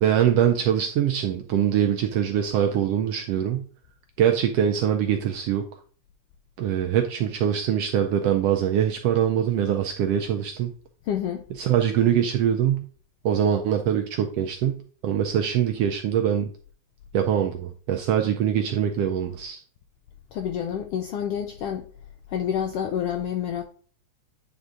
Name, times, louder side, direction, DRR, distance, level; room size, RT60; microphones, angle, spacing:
voice 1, 0.0-3.7 4.2-5.7 6.6-10.7 11.6-12.8 13.2-16.5 17.1-19.6, right 9 dB, 80° right, 1.4 m, -23 dB
voice 2, 11.0-11.4 20.3-21.9 22.3-23.6, left 9 dB, 85° left, 1.3 m, -28 dB
9.4 x 3.6 x 3.7 m
omnidirectional pair, 3.3 m